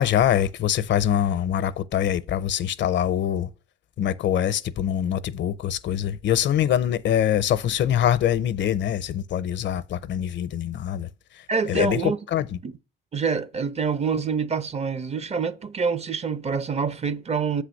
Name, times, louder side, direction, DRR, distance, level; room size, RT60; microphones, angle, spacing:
voice 1, 0.0-3.5 4.0-11.1 11.7-12.5, left 10 dB, 65° left, 0.6 m, -24 dB
voice 2, 11.5-12.2 12.6-12.7 13.1-17.6, right 5 dB, 35° right, 0.5 m, -26 dB
7.5 x 3.4 x 6.3 m
cardioid pair, 90°, 20 cm